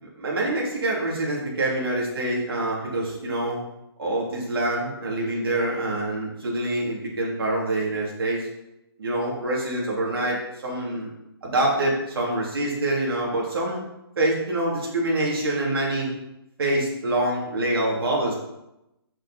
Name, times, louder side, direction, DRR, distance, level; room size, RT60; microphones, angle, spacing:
voice 1, 0.0-3.6 4.0-8.5 9.0-11.1 11.4-13.8 14.2-16.1 16.6-18.3, right 1 dB, 65° right, -4 dB, 2.9 m, -25 dB
6.7 x 6.1 x 4.3 m, 0.90 s
hypercardioid pair, 165°, 13 cm